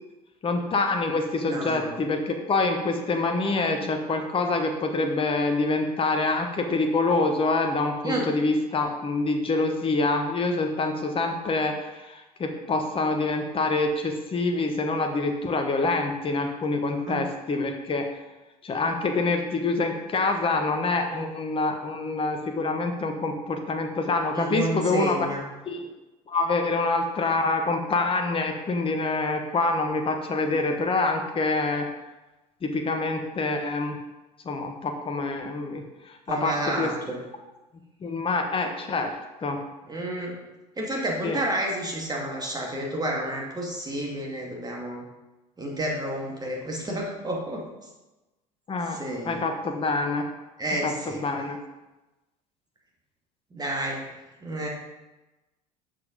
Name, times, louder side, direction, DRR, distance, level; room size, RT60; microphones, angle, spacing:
voice 1, 0.4-18.0 18.6-25.2 25.7-25.8 26.3-31.9 32.6-34.0 34.4-36.9 38.0-39.1 39.4-39.6 41.2-41.4 48.7-49.0 49.2-50.3 50.8-51.6, left 3 dB, 25° left, 4 dB, 1.2 m, -26 dB
voice 2, 1.5-1.9 8.0-8.2 17.1-17.3 21.1-21.3 24.3-25.4 36.3-37.2 39.9-40.3 40.8-45.0 45.6-47.7 48.9-49.4 50.6-51.2 53.5-54.0 54.4-54.7, right 1 dB, 20° right, -1 dB, 2.4 m, -30 dB
7.6 x 5.9 x 5.2 m, 1.1 s
figure-of-eight pair, 65°, 20 cm